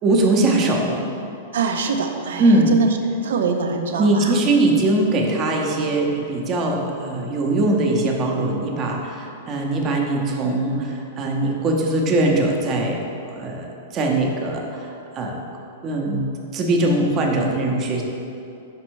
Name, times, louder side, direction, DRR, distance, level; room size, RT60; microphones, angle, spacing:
voice 1, 0.0-1.0 2.4-2.7 4.0-13.0 13.3-13.7 13.9-15.4 15.8-16.2 16.5-18.0, right 2 dB, 25° right, 0 dB, 0.6 m, -21 dB
voice 2, 1.5-2.9 3.2-4.3, right 6 dB, 80° right, 4 dB, 0.5 m, -24 dB
5.3 x 4.2 x 4.5 m, 2.7 s
supercardioid pair, 160°, 0 cm